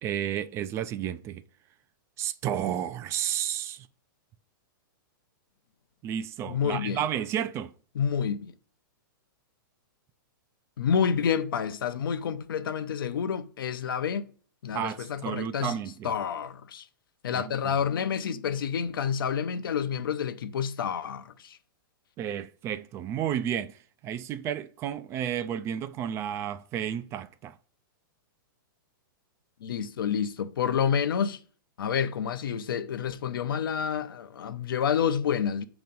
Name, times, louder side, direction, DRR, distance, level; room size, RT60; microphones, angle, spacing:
voice 1, 0.0-1.4 2.2-3.9 6.0-7.7 14.7-16.1 17.4-17.8 22.2-23.7 24.0-27.6, right 10 dB, 25° right, 0.3 m, -32 dB
voice 2, 6.5-7.0 7.9-8.5 10.8-14.3 14.6-15.7 16.0-16.8 17.2-21.6 29.6-31.4 31.8-35.7, left 7 dB, 80° left, 0.7 m, -29 dB
7.4 x 3.0 x 5.3 m
hypercardioid pair, 135°, 12 cm